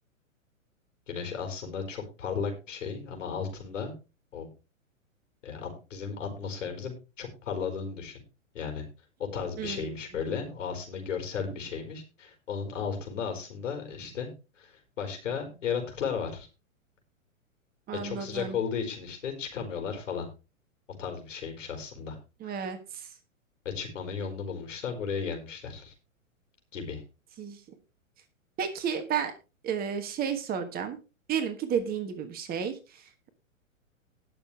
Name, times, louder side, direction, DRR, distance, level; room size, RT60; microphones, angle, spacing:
voice 1, 1.1-3.9 4.3-4.5 5.4-8.2 8.5-8.8 9.2-14.3 14.6-16.5 18.0-20.3 20.9-22.2 22.4-22.7 23.6-25.9 26.7-27.0, left 6 dB, 65° left, 4 dB, 4.8 m, -35 dB
voice 2, 9.6-9.9 17.9-18.5 22.4-23.1 27.4-27.6 28.6-29.3 29.6-31.0 31.3-32.8, right 7 dB, 20° right, 8 dB, 1.4 m, -32 dB
19.5 x 6.8 x 3.3 m, 0.30 s
figure-of-eight pair, 115°, 41 cm